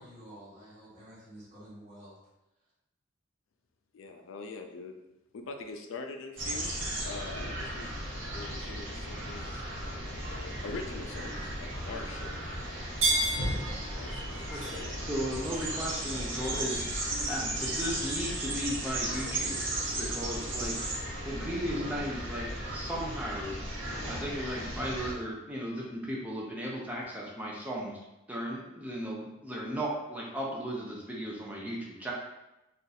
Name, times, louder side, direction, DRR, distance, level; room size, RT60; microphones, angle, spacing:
voice 1, 0.0-2.2, equal, 35° right, -9 dB, 1.2 m, -50 dB
voice 2, 3.9-5.0 5.3-6.7 7.0-7.9 8.3-9.6 10.1-12.4 13.9-14.9, left 3 dB, 70° left, 5 dB, 0.4 m, -43 dB
sound 1, 6.4-25.1, right 1 dB, 60° right, 0.8 m, -35 dB
sound 2, 6.9-16.7, right 2 dB, 85° right, 1.0 m, -38 dB
voice 3, 15.0-19.6 20.0-20.9 21.2-23.6 24.1-28.0 28.3-32.1, equal, 5° right, -3 dB, 0.4 m, -36 dB
2.6 x 2.4 x 3.9 m, 0.95 s
head